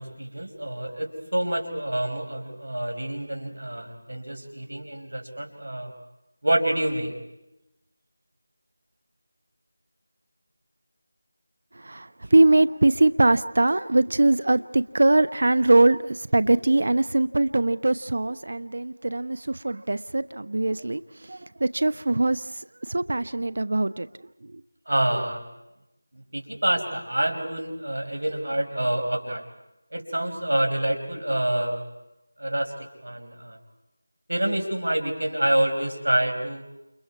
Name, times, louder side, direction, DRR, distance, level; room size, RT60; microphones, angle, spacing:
voice 1, 0.0-5.9 6.4-7.1 24.9-25.4 26.1-29.4 29.9-31.9 32.4-32.7 33.0-33.6 34.3-36.6, right 1 dB, 75° right, 5.2 m, -27 dB
voice 2, 11.7-24.1 24.5-24.6, right 2 dB, 60° right, 0.8 m, -22 dB
29.5 x 29.0 x 4.8 m
figure-of-eight pair, 170°, 0 cm